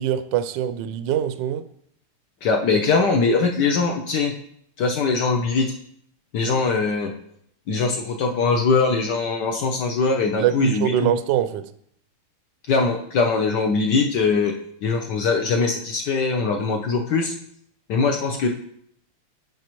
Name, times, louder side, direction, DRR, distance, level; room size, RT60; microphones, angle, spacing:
voice 1, 0.0-1.6 6.4-6.5 10.4-11.7, right 10 dB, 75° right, 1.0 m, -23 dB
voice 2, 2.4-4.3 4.8-5.7 6.3-7.1 7.7-11.1 12.7-14.5 14.8-17.3 17.9-18.5, left 4 dB, 65° left, 1.1 m, -21 dB
9.3 x 5.3 x 3.0 m
omnidirectional pair, 2.4 m